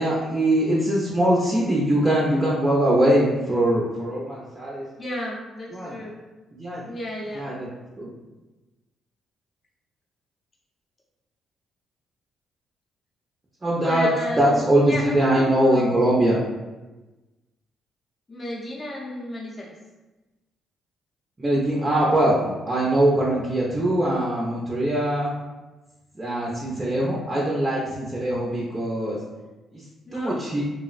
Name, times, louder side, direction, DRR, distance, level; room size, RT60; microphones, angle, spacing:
voice 1, 0.0-4.8 5.7-6.0 6.5-6.9 7.3-7.7 8.0-8.1 13.6-16.4 21.4-25.3 26.2-29.2 29.7-29.8 30.1-30.6, right 1 dB, 20° right, -5 dB, 0.5 m, -22 dB
voice 2, 5.0-6.1 6.9-7.5 13.8-15.9 18.3-19.7 30.1-30.4, left 1 dB, 35° left, -4 dB, 0.6 m, -33 dB
3.2 x 2.0 x 2.4 m, 1.1 s
cardioid pair, 90°, 0 cm